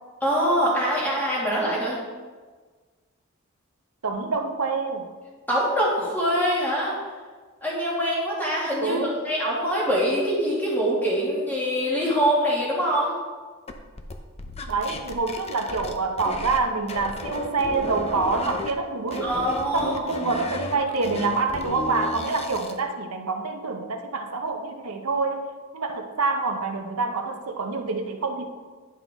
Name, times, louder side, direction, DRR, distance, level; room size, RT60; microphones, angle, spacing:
voice 1, 0.2-2.0 5.5-7.0 7.6-9.0 9.2-13.2 19.2-19.9 20.2-20.3, equal, 10° left, -6 dB, 2.1 m, -24 dB
voice 2, 4.0-5.1 8.8-9.2 14.7-19.3 19.7-25.5 25.7-28.5, right 3 dB, 80° right, 4 dB, 0.9 m, -26 dB
sound 1, 13.7-16.6 16.9-18.7 19.1-22.8, left 2 dB, 30° left, 0.5 m, -34 dB
11.0 x 5.6 x 3.6 m, 1.4 s
head